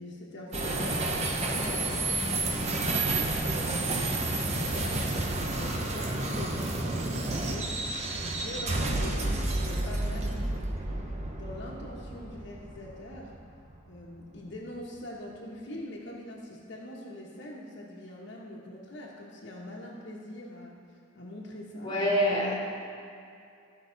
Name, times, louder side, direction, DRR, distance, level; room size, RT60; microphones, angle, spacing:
voice 1, 0.0-1.8 2.5-10.5 10.9-11.1 11.3-13.3 13.9-20.8 21.1-22.0, left 1 dB, 60° left, -3 dB, 1.1 m, -43 dB
sound 1, 0.5-13.9, right 2 dB, 35° right, 0.8 m, -30 dB
voice 2, 21.8-22.5, equal, 20° left, -4 dB, 1.6 m, -25 dB
14.0 x 5.7 x 3.9 m, 2.4 s
head